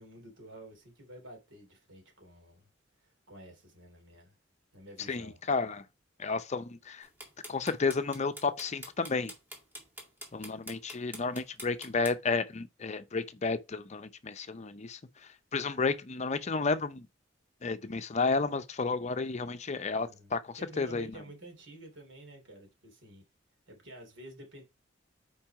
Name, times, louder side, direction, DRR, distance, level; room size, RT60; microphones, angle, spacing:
voice 1, 0.0-2.7 3.0-4.4 4.7-5.4 19.9-23.2 23.7-24.6, right 1 dB, 80° right, 3.0 m, -51 dB
voice 2, 5.1-5.8 6.2-7.1 7.5-9.3 10.3-17.1 17.6-21.1, left 4 dB, 40° left, 0.6 m, -32 dB
sound 1, 7.0-12.1, equal, 10° right, 2.1 m, -44 dB
5.9 x 4.6 x 4.7 m
head